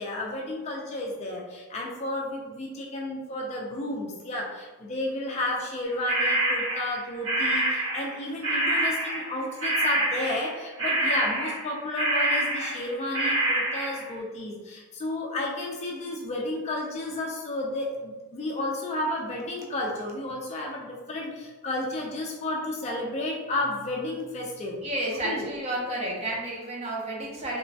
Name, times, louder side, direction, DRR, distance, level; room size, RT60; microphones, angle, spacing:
voice 1, 0.0-24.8 25.2-25.5, left 1 dB, 30° left, -2 dB, 0.3 m, -32 dB
sound 1, 6.1-8.2 8.4-14.1, right 1 dB, 75° right, 1.3 m, -26 dB
voice 2, 24.8-27.6, right 1 dB, 30° right, -3 dB, 0.6 m, -31 dB
2.9 x 2.2 x 2.6 m, 1.3 s
head